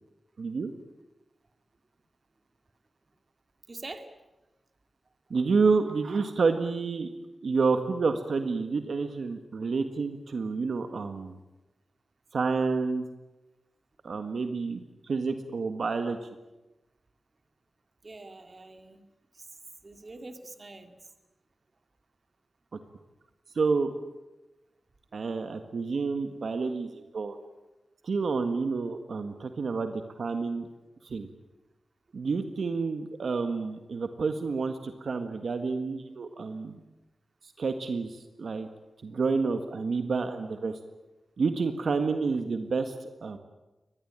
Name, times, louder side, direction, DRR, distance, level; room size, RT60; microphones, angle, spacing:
voice 1, 0.4-0.7 5.3-7.1 7.4-11.4 12.3-13.0 14.0-16.3 23.5-23.9 25.1-27.4 28.0-30.7 31.0-31.3 32.1-36.8 37.6-38.7 39.0-40.8 41.4-43.4, right 4 dB, 65° right, 7 dB, 1.7 m, -29 dB
voice 2, 3.7-4.1 18.0-19.0 19.3-19.5 19.8-20.9, right 2 dB, 35° right, 7 dB, 2.4 m, -44 dB
24.0 x 19.5 x 9.0 m, 1.0 s
wide cardioid pair, 125°, 0 cm